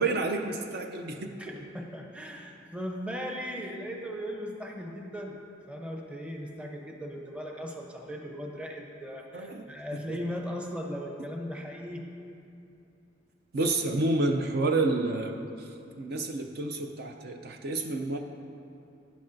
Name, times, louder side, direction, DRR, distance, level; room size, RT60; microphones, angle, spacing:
voice 1, 0.0-1.3 9.3-9.6 9.9-10.2 13.5-15.4 16.0-18.2, right 2 dB, 55° right, 4 dB, 0.5 m, -29 dB
voice 2, 1.4-5.4 5.7-12.0, equal, 5° right, 1 dB, 0.7 m, -38 dB
11.0 x 10.0 x 2.6 m, 2.7 s
head